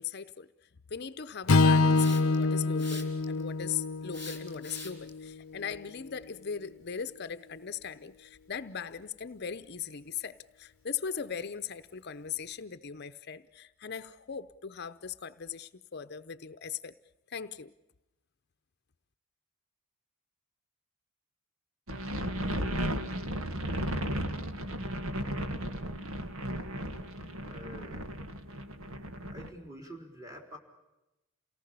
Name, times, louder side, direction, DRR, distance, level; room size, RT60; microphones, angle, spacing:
voice 1, 0.0-17.0 17.3-17.7, left 7 dB, 50° left, 0.7 m, -39 dB
Strum, 1.5-5.8, left 3 dB, 85° left, 0.7 m, -26 dB
Hiss, 1.9-2.4 2.8-3.4 4.1-5.1, left 3 dB, 5° left, 3.5 m, -43 dB
sound 1, 21.9-29.5, equal, 85° right, 1.9 m, -35 dB
voice 2, 27.5-28.0 29.3-30.6, equal, 15° right, 4.0 m, -47 dB
28.5 x 18.5 x 6.9 m
head